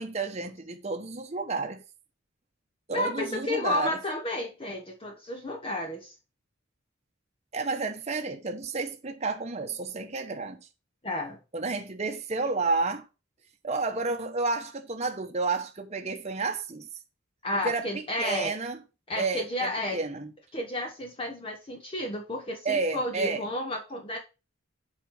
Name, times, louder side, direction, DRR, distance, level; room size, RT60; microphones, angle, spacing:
voice 1, 0.0-1.8 2.9-4.0 7.5-10.7 11.5-13.0 13.6-16.9 17.5-18.8 19.2-20.3 22.6-23.4, right 3 dB, 35° right, 1.0 m, -31 dB
voice 2, 2.9-6.1 11.0-11.4 17.4-18.5 19.1-20.0 20.5-24.2, left 1 dB, 25° left, 1.0 m, -32 dB
7.6 x 4.7 x 5.6 m
head